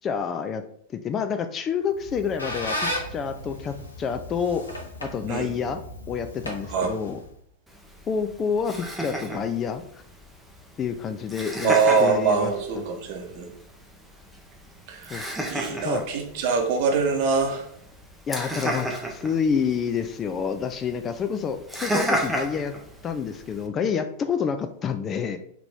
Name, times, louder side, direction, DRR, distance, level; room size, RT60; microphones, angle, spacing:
voice 1, 0.0-0.6 0.9-4.7 5.0-5.8 6.1-7.2 8.1-9.8 10.8-11.7 12.0-12.8 15.1-15.4 15.7-16.0 18.3-22.7 23.0-25.4, left 6 dB, 25° left, 9 dB, 0.3 m, -28 dB
Squeak, 1.9-7.4, equal, 80° left, 0.8 m, -35 dB
Laughter, 7.7-23.7, right 1 dB, ahead, 0.7 m, -34 dB
voice 2, 11.6-13.5 14.9-17.7, right 5 dB, 45° right, 3 dB, 0.8 m, -24 dB
3.8 x 2.9 x 3.5 m, 0.66 s
figure-of-eight pair, 90°, 0 cm